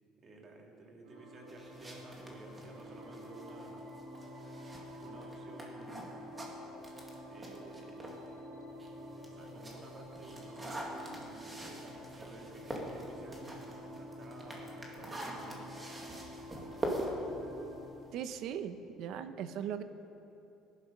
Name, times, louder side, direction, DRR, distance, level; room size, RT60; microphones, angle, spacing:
voice 1, 0.2-3.9 5.0-6.2 7.3-8.2 9.3-15.8, right 2 dB, 30° right, 1 dB, 2.2 m, -53 dB
sound 1, 1.0-17.9, equal, 85° right, 3.6 m, -49 dB
sound 2, 1.5-8.3 8.7-18.4, right 1 dB, 15° right, 2.1 m, -44 dB
voice 2, 18.1-19.8, right 9 dB, 60° right, 10 dB, 0.8 m, -39 dB
19.0 x 11.5 x 5.4 m, 2.9 s
cardioid pair, 150°, 0 cm